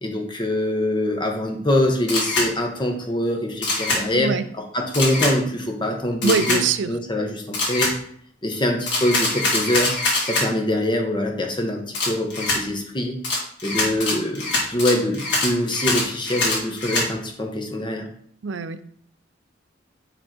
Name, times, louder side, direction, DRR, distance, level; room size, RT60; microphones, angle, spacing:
voice 1, 0.0-7.9 8.4-9.9 10.2-13.2 13.6-18.1, left 1 dB, 25° left, 2 dB, 1.2 m, -24 dB
Camera, 2.1-2.5 3.6-4.0 4.9-5.3 6.2-6.6 7.5-7.9 8.9-10.5 11.9-12.6 13.2-17.1, left 2 dB, 65° left, 2.4 m, -23 dB
voice 2, 4.1-4.5 6.2-6.9 18.4-18.8, right 5 dB, 80° right, 12 dB, 0.5 m, -23 dB
9.1 x 3.5 x 4.4 m, 0.62 s
head